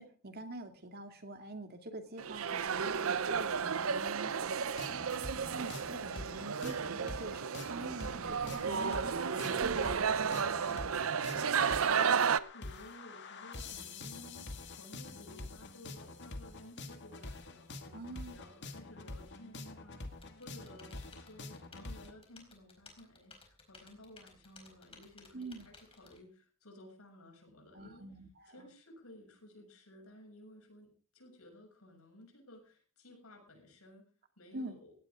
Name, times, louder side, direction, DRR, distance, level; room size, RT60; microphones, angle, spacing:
voice 1, 0.0-5.1 5.5-11.1 17.9-18.4 25.3-25.7 27.7-28.7 34.5-34.8, right 2 dB, 45° right, 6 dB, 2.5 m, -46 dB
sound 1, 2.2-12.4, right 6 dB, 70° right, 0.7 m, -33 dB
sound 2, 4.8-22.1, left 2 dB, 55° left, 2.0 m, -46 dB
voice 2, 11.9-17.9 18.3-28.1 28.5-34.0 34.4-34.9, left 1 dB, 90° left, 2 dB, 7.4 m, -56 dB
Typing, 20.2-26.2, left 4 dB, 25° left, 4.5 m, -59 dB
17.5 x 17.5 x 3.8 m, 0.39 s
head